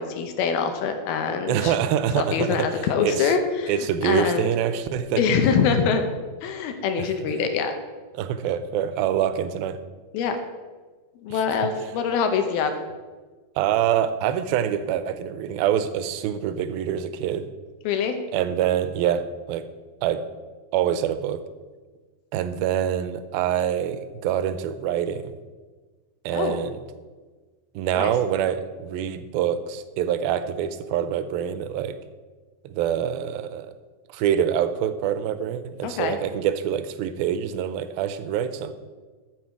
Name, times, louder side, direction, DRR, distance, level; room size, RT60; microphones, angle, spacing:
voice 1, 0.0-1.7 2.2-3.7 4.0-4.5 5.2-6.0 6.4-7.7 10.1-10.4 11.2-12.8 17.8-18.2 26.3-26.6 28.0-28.1 35.8-36.2, left 6 dB, 80° left, 7 dB, 2.8 m, -24 dB
voice 2, 1.5-2.7 3.0-3.3 3.7-5.2 7.0-7.3 8.1-9.8 11.3-11.4 13.6-17.5 18.3-19.7 20.0-20.2 20.7-21.4 22.3-25.3 26.2-26.8 27.8-32.0 32.6-33.7 34.1-38.7, right 9 dB, 80° right, 11 dB, 2.4 m, -25 dB
13.5 x 6.4 x 4.6 m, 1.4 s
omnidirectional pair, 4.4 m